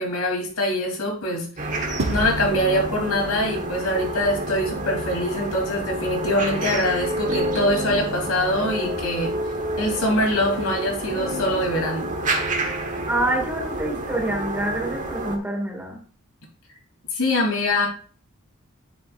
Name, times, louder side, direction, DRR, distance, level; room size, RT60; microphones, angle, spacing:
voice 1, 0.0-1.5 2.1-9.3 9.8-12.1 17.1-17.9, left 1 dB, 80° left, 0 dB, 3.2 m, -23 dB
sound 1, 1.6-15.4, right 1 dB, 35° right, 1.2 m, -29 dB
sound 2, 2.0-4.6, right 2 dB, 65° right, 1.0 m, -32 dB
voice 2, 13.1-16.0, right 1 dB, 10° right, -1 dB, 2.1 m, -26 dB
10.5 x 7.7 x 2.5 m, 0.43 s
head